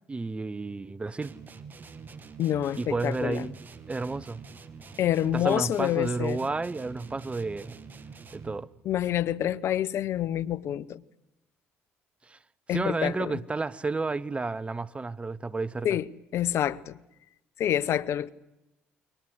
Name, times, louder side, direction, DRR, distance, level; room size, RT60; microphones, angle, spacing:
voice 1, 0.1-1.3 2.8-3.5 3.9-4.4 5.3-7.8 8.3-8.7 12.3-12.4 12.7-16.0, right 3 dB, 25° right, 1.0 m, -31 dB
sound 1, 1.2-8.7, right 5 dB, 40° right, 2.6 m, -46 dB
voice 2, 2.4-3.5 5.0-6.4 8.8-11.0 12.7-13.3 15.8-16.0 16.3-17.0 17.6-18.3, left 11 dB, 65° left, 1.0 m, -27 dB
28.5 x 23.0 x 8.0 m
supercardioid pair, 65°, 5 cm